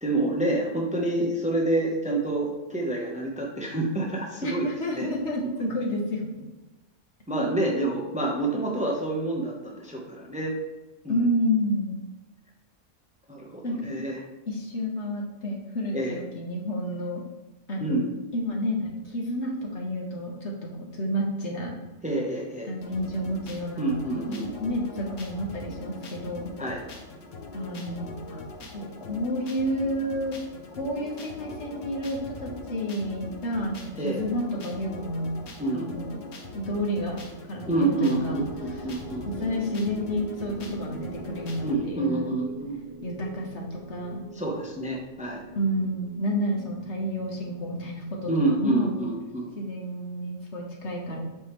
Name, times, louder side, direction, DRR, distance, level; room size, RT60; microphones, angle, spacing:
voice 1, 0.0-4.7 4.9-5.1 7.3-10.5 11.0-11.2 13.3-14.2 15.9-16.2 17.8-18.1 22.0-22.7 23.8-24.5 26.6-26.8 34.0-34.2 35.6-35.9 37.7-39.3 41.6-42.8 44.3-45.4 48.3-49.5, right 2 dB, 5° right, -1 dB, 0.9 m, -28 dB
voice 2, 4.4-6.2 11.1-12.0 13.6-13.8 14.5-17.2 17.7-18.1 18.3-21.8 22.7-26.5 27.5-28.4 28.7-30.4 30.8-35.4 35.7-36.2 36.5-37.2 37.4-38.5 39.2-42.3 43.0-44.2 45.6-49.0 49.6-51.2, equal, 60° left, -1 dB, 1.6 m, -30 dB
sound 1, 22.8-41.8, left 3 dB, 80° left, 1.3 m, -42 dB
sound 2, 38.3-49.5, right 4 dB, 40° right, 0.7 m, -43 dB
7.9 x 5.4 x 3.2 m, 1.1 s
omnidirectional pair, 1.3 m